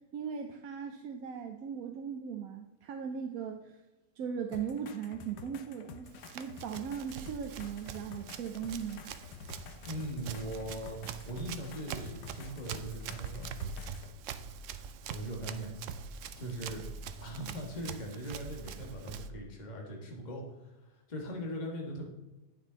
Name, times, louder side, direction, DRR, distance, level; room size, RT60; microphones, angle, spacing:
voice 1, 0.1-3.8 4.2-6.1 6.3-9.0, right 7 dB, 65° right, 4 dB, 0.9 m, -38 dB
sound 1, 4.5-14.1 15.5-15.6, left 7 dB, 75° left, 1.2 m, -50 dB
Run, 6.1-19.3, right 6 dB, 85° right, 0.6 m, -44 dB
voice 2, 9.8-11.0 11.3-13.5 15.0-15.7 16.4-16.8 17.2-22.1, right 1 dB, 25° left, 0 dB, 1.5 m, -40 dB
9.4 x 6.3 x 3.9 m, 1.1 s
omnidirectional pair, 1.9 m